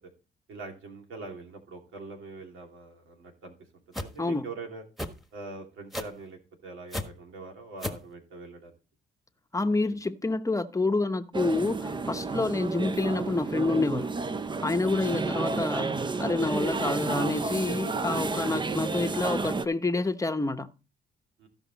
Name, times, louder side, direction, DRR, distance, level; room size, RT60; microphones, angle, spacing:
voice 1, 0.5-3.5 3.9-4.8 5.3-8.7 21.4-21.5, right 3 dB, 80° right, 2.8 m, -43 dB
sound 1, 3.9-4.1 5.0-5.2 5.9-6.2 6.9-7.1 7.8-8.1, left 1 dB, ahead, 1.4 m, -32 dB
voice 2, 9.5-14.1 14.6-20.7, left 3 dB, 15° left, 0.9 m, -28 dB
sound 2, 11.3-19.7, right 3 dB, 25° right, 0.6 m, -31 dB
15.0 x 5.4 x 4.1 m
cardioid pair, 90°, 20 cm